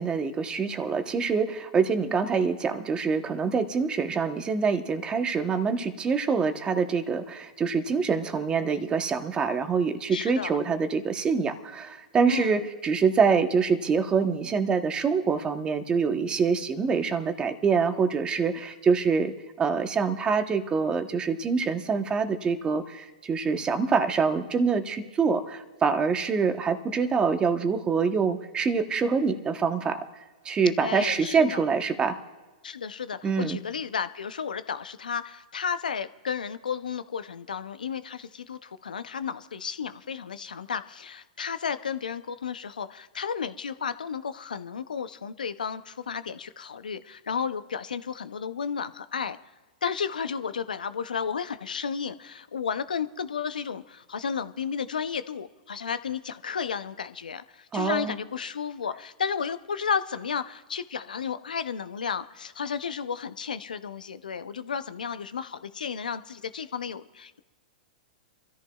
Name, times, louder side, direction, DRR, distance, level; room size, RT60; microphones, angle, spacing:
voice 1, 0.0-30.0 30.4-32.2 33.2-33.6 57.7-58.1, right 5 dB, 20° right, 9 dB, 1.0 m, -25 dB
voice 2, 10.1-10.6 12.3-12.6 30.8-31.6 32.6-49.4 49.8-67.4, left 6 dB, 85° left, 13 dB, 0.6 m, -33 dB
26.0 x 13.5 x 2.3 m, 1.3 s
hypercardioid pair, 115°, 4 cm